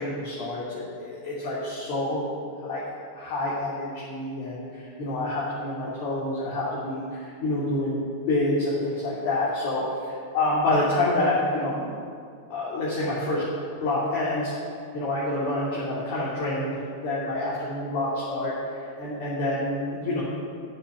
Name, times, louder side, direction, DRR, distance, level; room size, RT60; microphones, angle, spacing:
voice 1, 0.0-2.2 2.6-2.8 3.1-8.0 8.3-11.9 12.5-13.5 13.8-14.5 14.9-18.5 18.8-20.2, left 2 dB, 45° left, -8 dB, 3.0 m, -27 dB
9.9 x 7.1 x 8.6 m, 2.3 s
figure-of-eight pair, 90°, 0 cm